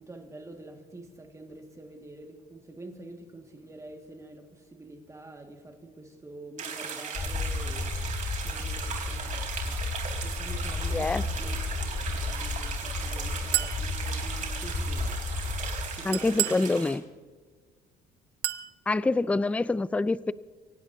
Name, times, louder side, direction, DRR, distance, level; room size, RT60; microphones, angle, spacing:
voice 1, 0.0-9.8 10.2-11.6 12.1-15.2 15.9-16.7, right 2 dB, 20° right, 1.9 m, -47 dB
sound 1, 6.6-17.0, right 6 dB, 50° right, 3.7 m, -37 dB
sound 2, 7.1-15.9, left 3 dB, 25° left, 2.0 m, -33 dB
voice 2, 10.9-11.2 16.0-17.0 18.9-20.3, left 3 dB, 10° left, 0.4 m, -26 dB
Chink clink, 13.5-13.8 16.1-16.7 18.4-18.7, right 15 dB, 80° right, 0.9 m, -29 dB
25.5 x 16.5 x 2.7 m
cardioid pair, 110°, 17 cm